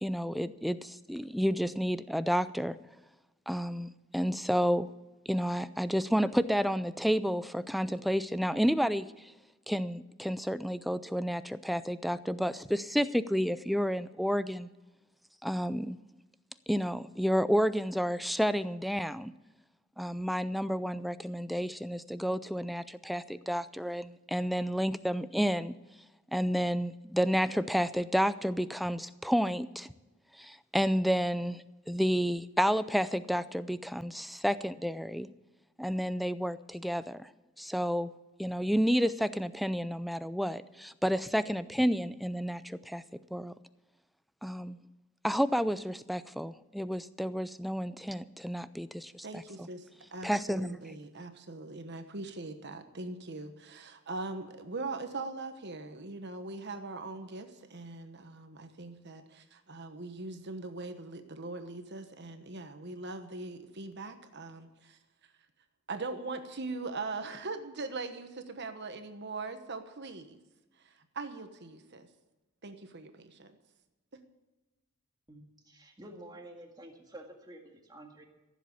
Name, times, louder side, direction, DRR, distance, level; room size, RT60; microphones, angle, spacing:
voice 1, 0.0-2.8 3.5-4.9 5.3-9.3 9.7-14.7 15.4-16.0 16.7-19.3 20.0-25.8 26.3-29.9 30.4-35.3 35.8-37.3 37.6-38.1 38.4-43.0 43.3-43.5 44.4-44.8 45.2-49.7 50.2-50.9, equal, ahead, 14 dB, 0.4 m, -30 dB
voice 2, 49.2-65.0 65.9-70.4 70.8-72.1 72.6-73.5 74.1-74.2, right 3 dB, 55° right, 7 dB, 1.2 m, -41 dB
voice 3, 75.3-78.2, right 1 dB, 20° right, 2 dB, 1.9 m, -50 dB
15.0 x 7.5 x 8.3 m, 1.1 s
head